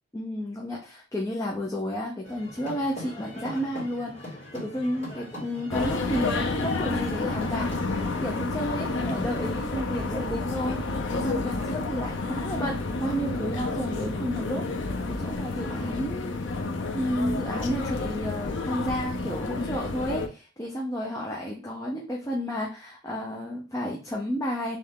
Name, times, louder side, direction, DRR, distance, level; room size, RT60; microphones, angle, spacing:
voice 1, 0.1-10.8 11.1-14.7 15.1-16.4 16.9-24.8, equal, 15° left, -2 dB, 0.7 m, -32 dB
sound 1, 2.2-8.4, left 1 dB, 35° left, 2.2 m, -40 dB
sound 2, 5.7-20.3, left 3 dB, 75° left, 0.7 m, -30 dB
3.5 x 3.3 x 3.7 m, 0.34 s
head